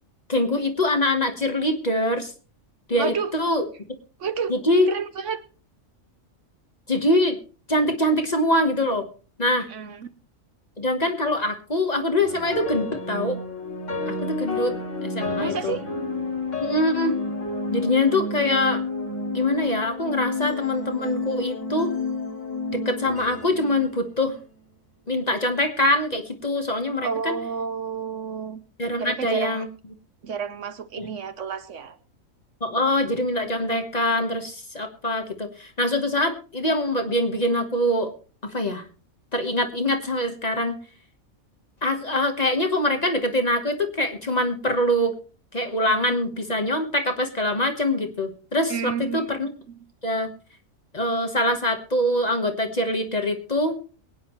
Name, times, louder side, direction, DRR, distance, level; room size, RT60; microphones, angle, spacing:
voice 1, 0.3-2.3 2.9-3.6 4.5-4.9 6.9-7.4 7.7-9.1 9.4-9.7 10.8-13.4 14.1-15.8 16.6-17.1 17.7-18.8 19.3-21.9 22.7-24.4 25.1-27.4 28.8-29.7 31.0-31.1 32.6-38.1 38.4-38.8 39.3-40.8 41.8-45.1 45.5-49.5 50.0-50.3 50.9-53.8, left 1 dB, 30° left, 5 dB, 1.3 m, -24 dB
voice 2, 3.0-3.3 4.2-4.5 4.9-5.4 9.7-10.1 15.4-15.8 27.0-28.6 29.0-29.7 30.2-32.0 48.7-49.8, right 6 dB, 65° right, 11 dB, 1.1 m, -30 dB
sound 1, 12.2-24.5, left 4 dB, 60° left, 2.6 m, -30 dB
23.0 x 9.3 x 3.1 m, 0.37 s
omnidirectional pair, 1.4 m